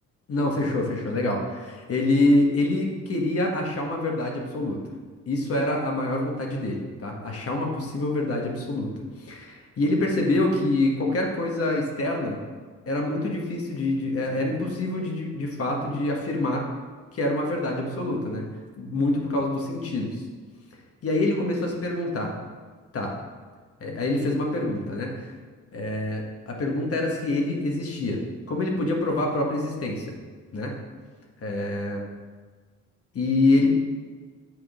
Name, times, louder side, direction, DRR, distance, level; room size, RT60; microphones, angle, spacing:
voice 1, 0.3-4.8 5.3-8.9 9.2-12.4 12.9-16.6 17.1-18.4 18.8-20.2 21.0-22.3 22.9-23.1 23.8-25.3 25.7-28.2 28.5-30.1 30.5-30.7 31.4-32.0 33.1-33.7, left 2 dB, 50° left, 0 dB, 1.5 m, -26 dB
7.6 x 3.8 x 5.0 m, 1.5 s
cardioid pair, 90°, 30 cm